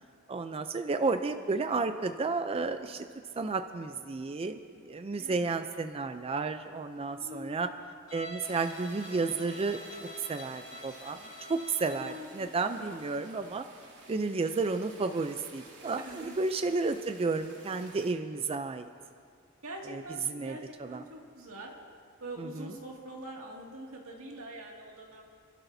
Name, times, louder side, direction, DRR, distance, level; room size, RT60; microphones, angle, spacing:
voice 1, 0.3-3.1 3.4-7.7 8.1-9.8 10.2-11.2 11.5-13.6 14.1-18.9 19.9-21.0 22.4-22.7, right 4 dB, 30° right, 8 dB, 0.4 m, -32 dB
voice 2, 5.2-5.5 7.2-7.8 11.9-12.3 12.8-13.1 16.1-16.3 19.6-21.7 22.2-25.2, right 1 dB, 90° right, -1 dB, 2.2 m, -44 dB
Bowed string instrument, 8.1-12.3, left 1 dB, 70° left, 3.4 m, -46 dB
sound 1, 8.4-18.1, right 3 dB, 60° right, 2.5 m, -52 dB
28.5 x 12.0 x 2.7 m, 2.3 s
head